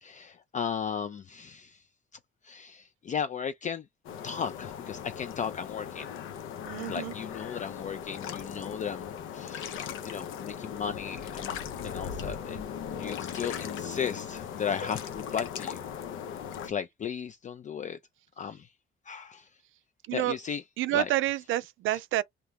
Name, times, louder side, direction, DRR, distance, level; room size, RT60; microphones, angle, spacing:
voice 1, 0.0-1.8 2.4-3.8 4.2-6.1 6.8-15.8 16.6-18.0 18.4-18.7 19.1-19.5 20.1-20.6 20.9-21.1, left 7 dB, 40° left, 0.4 m, -36 dB
sound 1, 4.0-16.7, left 8 dB, 90° left, 0.7 m, -38 dB
voice 2, 6.7-7.1 20.1-20.4 20.8-22.2, right 14 dB, 80° right, 0.4 m, -28 dB
2.9 x 2.3 x 3.3 m
cardioid pair, 90°, 20 cm